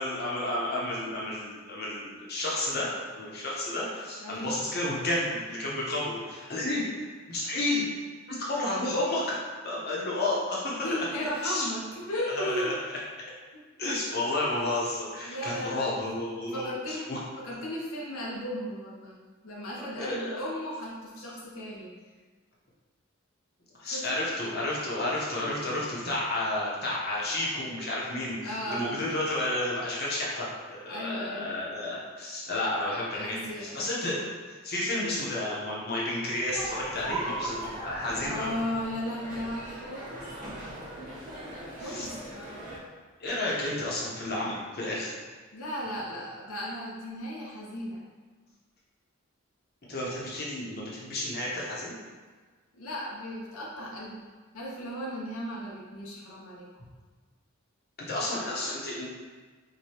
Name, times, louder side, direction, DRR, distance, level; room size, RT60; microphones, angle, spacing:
voice 1, 0.0-2.9 3.2-6.8 7.3-7.8 8.3-9.4 9.6-11.1 11.4-11.6 12.3-12.7 13.8-17.2 19.8-20.4 23.8-38.5 41.8-42.1 43.2-45.1 49.9-51.9 58.1-59.1, left 1 dB, 50° left, -5 dB, 0.8 m, -31 dB
voice 2, 4.2-4.6 10.1-10.3 10.8-12.7 13.5-13.6 14.1-14.3 15.2-17.1 17.4-19.2 19.4-21.9 23.9-24.3 28.4-29.0 30.9-31.5 33.1-34.2 38.2-40.3 41.8-42.2 45.5-48.0 52.7-54.3 54.5-56.7, equal, 80° left, -4 dB, 0.6 m, -36 dB
sound 1, 36.5-42.8, right 2 dB, 35° right, 0.9 m, -39 dB
4.7 x 2.2 x 2.8 m, 1.4 s
head